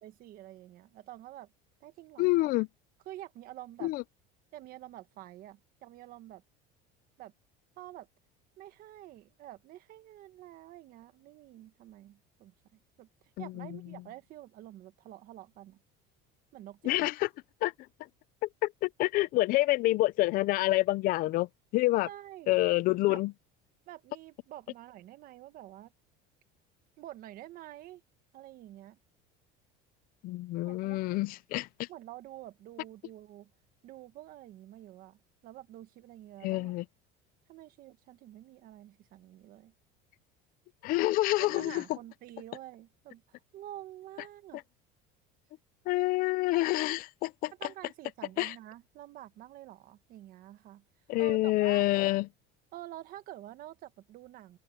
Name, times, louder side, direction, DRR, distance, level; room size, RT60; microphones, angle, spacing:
voice 1, 0.0-1.5 1.8-2.5 3.0-3.9 4.5-6.4 7.2-7.3 7.8-8.1 8.6-13.1 13.4-15.8 16.5-17.1 22.0-22.6 23.1-23.2 23.9-25.9 27.0-28.0 28.3-29.0 30.6-31.2 31.9-33.5 33.8-36.7 37.5-39.7 41.4-44.6 47.6-50.8 51.2-51.8 52.7-54.6, right 14 dB, 45° right, 1.5 m, -48 dB
voice 2, 2.2-2.7 3.8-4.0 13.4-13.7 16.8-17.3 17.6-17.7 18.4-21.5 21.7-22.1 22.5-23.3 30.2-31.9 36.4-36.8 40.8-41.8 45.9-47.5 48.4-48.5 51.1-52.3, left 18 dB, 45° left, 0.5 m, -27 dB
cardioid pair, 165°, 21 cm